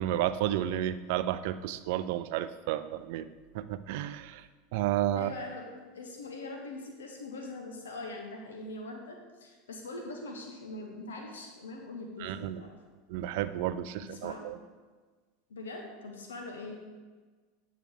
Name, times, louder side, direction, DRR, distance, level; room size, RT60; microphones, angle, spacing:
voice 1, 0.0-3.3 3.5-5.3 12.2-12.6 13.1-14.6, right 12 dB, 65° right, 13 dB, 0.4 m, -32 dB
voice 2, 5.1-12.8 14.0-14.5 15.5-16.8, left 2 dB, 85° left, 2 dB, 0.9 m, -42 dB
8.4 x 4.6 x 3.7 m, 1.4 s
hypercardioid pair, 95°, 0 cm